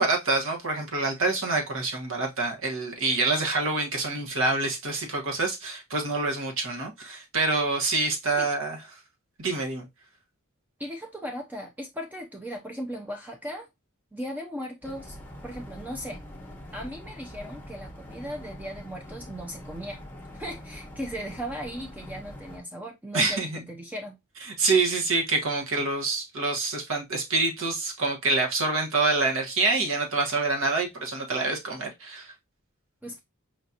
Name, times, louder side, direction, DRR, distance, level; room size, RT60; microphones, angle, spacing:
voice 1, 0.0-8.8 9.4-9.9 23.1-23.6 24.6-32.3, right 3 dB, 65° right, 1.3 m, -26 dB
voice 2, 10.8-13.7 14.1-15.2 15.4-16.2 16.7-20.0 20.3-23.4 23.7-24.2 33.0-33.2, equal, 10° right, 0.5 m, -37 dB
sound 1, 14.8-22.6, equal, 10° left, 1.0 m, -43 dB
5.1 x 2.8 x 2.4 m
head